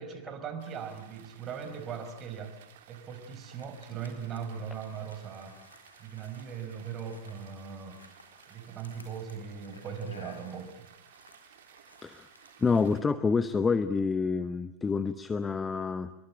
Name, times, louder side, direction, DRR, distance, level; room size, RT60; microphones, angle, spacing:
voice 1, 0.0-5.6 6.0-8.0 8.5-10.9, right 7 dB, 30° right, 8 dB, 5.0 m, -39 dB
sound 1, 0.6-13.0, right 9 dB, 55° right, 3.2 m, -57 dB
sound 2, 3.0-12.9, left 3 dB, 75° left, 4.2 m, -57 dB
voice 2, 12.6-16.1, left 5 dB, 15° left, 12 dB, 1.0 m, -28 dB
26.5 x 23.5 x 8.9 m, 0.89 s
figure-of-eight pair, 90°, 0 cm